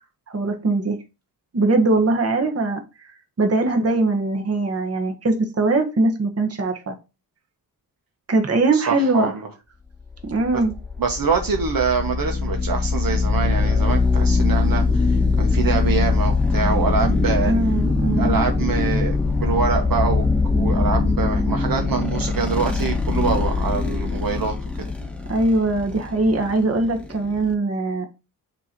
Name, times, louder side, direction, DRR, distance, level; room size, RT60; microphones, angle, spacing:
voice 1, 0.3-1.0 1.5-2.8 3.4-6.9 8.3-9.3 10.2-10.7 17.4-18.4 25.3-28.1, right 2 dB, 40° right, 1.5 m, -21 dB
voice 2, 8.7-9.5 10.5-10.6 11.0-17.5 18.2-20.2 20.5-24.5, right 5 dB, 60° right, 1.3 m, -25 dB
sound 1, 10.1-27.5, left 3 dB, 5° left, 1.1 m, -22 dB
6.7 x 3.1 x 5.1 m
cardioid pair, 100°, 38 cm